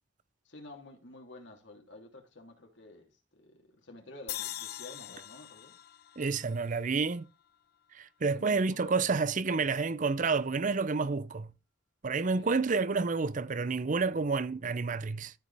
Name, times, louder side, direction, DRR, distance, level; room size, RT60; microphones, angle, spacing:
voice 1, 0.4-5.8 8.3-9.0 12.2-12.5, left 2 dB, 70° left, 3.0 m, -50 dB
sound 1, 4.3-7.6, left 14 dB, 55° left, 0.4 m, -43 dB
voice 2, 6.2-7.3 7.9-11.5 12.0-15.3, right 4 dB, 45° right, 0.5 m, -29 dB
13.5 x 5.2 x 3.4 m
head